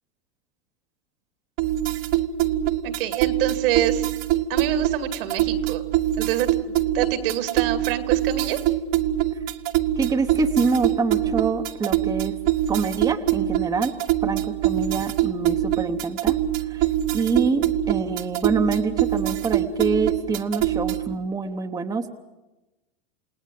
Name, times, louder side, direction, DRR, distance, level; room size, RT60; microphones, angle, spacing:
sound 1, 1.6-21.1, right 13 dB, 50° right, 1.2 m, -24 dB
voice 1, 2.8-4.1 4.5-5.8 6.2-8.6, right 11 dB, 70° right, 8 dB, 2.4 m, -26 dB
voice 2, 10.0-12.3 12.7-13.9 14.2-22.1, right 4 dB, 15° right, 6 dB, 1.0 m, -26 dB
29.0 x 18.0 x 7.7 m, 1.1 s
supercardioid pair, 130°, 29 cm